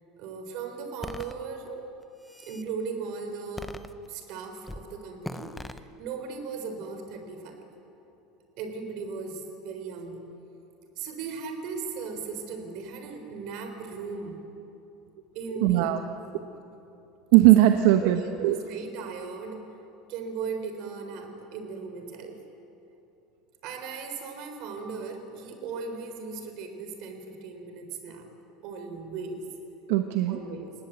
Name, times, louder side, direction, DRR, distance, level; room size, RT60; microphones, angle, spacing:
voice 1, 0.2-1.9 2.4-3.8 4.1-7.6 8.6-10.2 11.0-14.4 15.3-16.0 18.0-19.6 20.1-22.4 23.6-28.3 28.6-29.5 30.3-30.7, right 5 dB, 50° right, 5 dB, 3.8 m, -37 dB
sound 1, 1.0-1.3 2.0-2.7 3.6-4.3 4.7-4.9 5.2-5.8, left 2 dB, 5° left, 0.7 m, -39 dB
voice 2, 15.6-16.0 17.3-18.5 29.9-30.4, right 14 dB, 70° right, 6 dB, 1.1 m, -19 dB
29.5 x 18.5 x 8.3 m, 2.9 s
cardioid pair, 170°, 0 cm